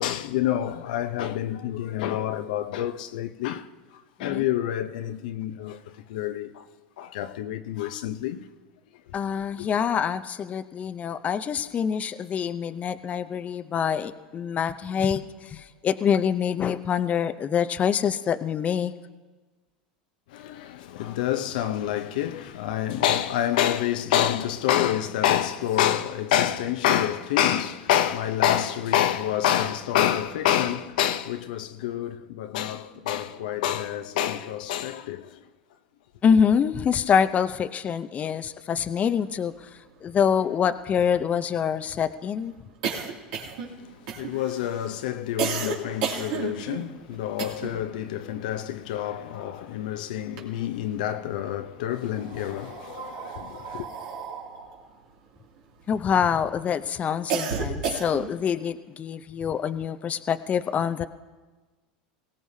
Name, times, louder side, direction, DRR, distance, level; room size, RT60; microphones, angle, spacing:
voice 1, 0.0-3.7 4.2-6.7 7.0-8.5 20.3-35.4 44.1-53.9, left 11 dB, 70° left, 0.8 m, -27 dB
voice 2, 9.1-18.9 36.2-39.7 40.0-42.5 55.9-61.0, left 7 dB, 30° left, 0.7 m, -25 dB
sound 1, 39.7-39.8 40.0-40.1 40.4-47.9 48.2-49.8 50.1-51.1 51.8-56.3 56.7-58.4, right 6 dB, 65° right, 2.6 m, -33 dB
22.5 x 17.5 x 2.8 m
hypercardioid pair, 85°, 5 cm